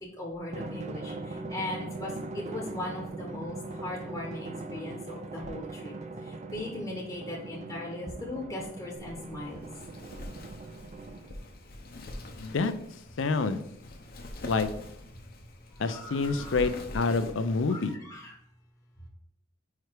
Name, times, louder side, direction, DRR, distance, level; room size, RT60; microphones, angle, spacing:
voice 1, 0.2-5.9 6.3-9.7 15.9-16.7 17.7-18.3, left 1 dB, 20° left, -2 dB, 0.9 m, -39 dB
Drum, 0.5-11.5, right 3 dB, 35° right, 0.5 m, -40 dB
Wind, 8.9-17.6, left 1 dB, 55° left, 0.8 m, -44 dB
voice 2, 12.4-12.7 13.2-13.6 14.4-14.7 15.8-17.9, left 4 dB, 85° left, 10 dB, 0.5 m, -27 dB
4.9 x 4.7 x 4.6 m, 0.74 s
head